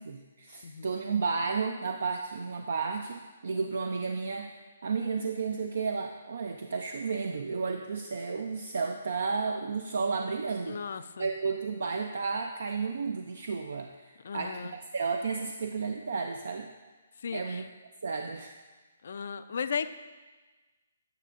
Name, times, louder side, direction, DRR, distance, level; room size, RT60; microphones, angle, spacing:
voice 1, 0.0-16.7 17.3-17.6 18.0-18.6, right 4 dB, 60° right, 5 dB, 0.4 m, -32 dB
voice 2, 10.7-11.3 14.2-14.7 17.2-17.6 19.0-19.9, left 6 dB, 55° left, 12 dB, 0.3 m, -35 dB
9.2 x 7.4 x 2.4 m, 1.3 s
figure-of-eight pair, 135°, 0 cm